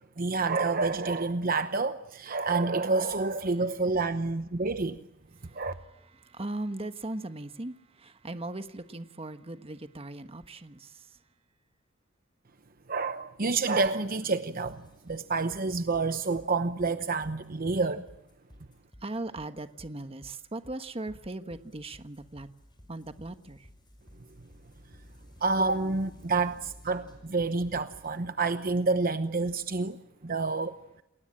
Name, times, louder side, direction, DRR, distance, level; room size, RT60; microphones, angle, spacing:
voice 1, 0.2-5.0 5.5-5.7 12.9-18.1 25.4-30.7, right 3 dB, 45° right, 0.9 m, -28 dB
voice 2, 5.4-11.2 19.0-22.5 22.9-23.7, right 2 dB, 30° right, 1.3 m, -39 dB
sound 1, 14.6-28.2, equal, 25° left, 5.6 m, -54 dB
29.0 x 21.0 x 8.8 m
head